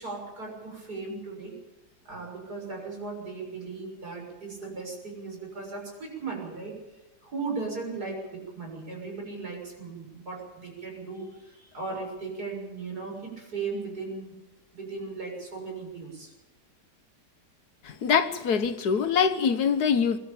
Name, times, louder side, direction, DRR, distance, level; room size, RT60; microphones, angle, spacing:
voice 1, 0.0-1.6 2.1-6.8 7.2-14.3 14.7-16.3, right 4 dB, 70° right, 7.2 m, -37 dB
voice 2, 17.8-20.2, left 6 dB, 75° left, 1.6 m, -24 dB
24.0 x 12.5 x 8.9 m
omnidirectional pair, 1.7 m